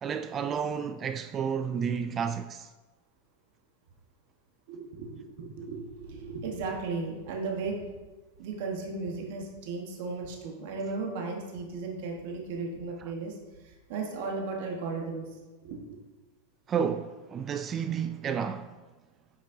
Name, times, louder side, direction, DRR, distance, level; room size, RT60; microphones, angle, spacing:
voice 1, 0.0-2.7 16.7-18.7, right 7 dB, 30° right, 0.3 m, -31 dB
voice 2, 4.7-7.8 8.4-16.0, right 4 dB, 65° right, 1.2 m, -36 dB
8.8 x 5.3 x 2.7 m
hypercardioid pair, 105°, 0 cm